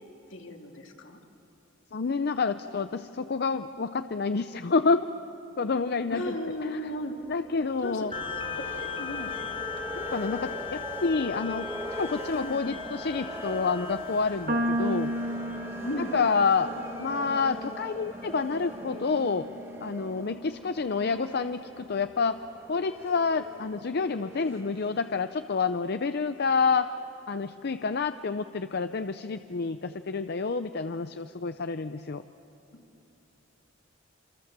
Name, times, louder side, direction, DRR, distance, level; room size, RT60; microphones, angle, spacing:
voice 1, 0.3-1.2 6.1-7.2 7.8-8.1 8.6-9.3 12.4-12.8 15.8-16.1 32.7-32.8, left 1 dB, 75° left, 2 dB, 2.7 m, -36 dB
voice 2, 1.9-5.1 5.6-6.3 6.6-6.8 7.3-8.1 10.0-11.7 12.0-15.1 16.1-16.7 17.0-19.5 19.8-22.4 22.7-26.9 27.3-32.2, left 4 dB, 55° left, 10 dB, 0.6 m, -28 dB
sound 1, 6.2-25.3, right 1 dB, 15° right, 1.8 m, -42 dB
sound 2, 8.1-19.0, left 6 dB, 30° left, 1.1 m, -39 dB
sound 3, 14.5-20.8, equal, 50° right, 1.8 m, -35 dB
28.0 x 27.5 x 7.5 m, 2.9 s
head